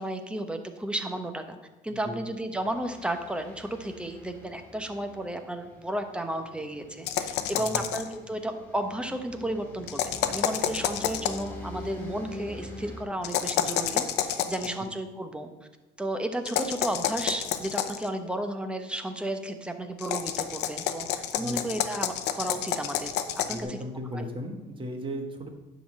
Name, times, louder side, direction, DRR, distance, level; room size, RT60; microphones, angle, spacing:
voice 1, 0.0-1.6 1.8-15.5 16.0-23.1 23.5-23.8 24.1-24.2, right 1 dB, 5° right, 6 dB, 0.9 m, -33 dB
voice 2, 1.9-2.2 7.5-7.9 21.3-21.6 23.4-25.5, equal, 30° right, 3 dB, 1.5 m, -36 dB
sound 1, 2.6-13.0, left 1 dB, 10° left, 2.9 m, -45 dB
sound 2, 7.1-8.1 9.9-11.5 13.2-14.7 16.4-18.1 20.0-23.6, left 10 dB, 85° left, 0.7 m, -29 dB
10.0 x 4.0 x 7.3 m, 1.1 s
cardioid pair, 110°, 17 cm